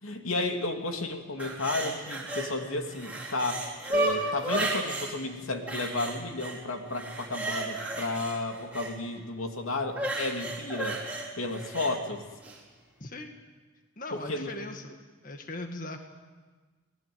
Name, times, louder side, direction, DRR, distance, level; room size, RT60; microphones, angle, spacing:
voice 1, 0.0-11.0 11.4-12.2 14.1-14.6, left 2 dB, 90° left, 4 dB, 2.7 m, -32 dB
sound 1, 1.4-2.5 2.8-5.1 5.7-6.6 6.9-8.9 9.9-11.9 12.4-12.6, right 2 dB, 5° right, 4.6 m, -33 dB
voice 2, 13.0-13.4 14.0-16.0, left 2 dB, 40° left, 4 dB, 1.9 m, -39 dB
27.0 x 19.0 x 9.5 m, 1.4 s
head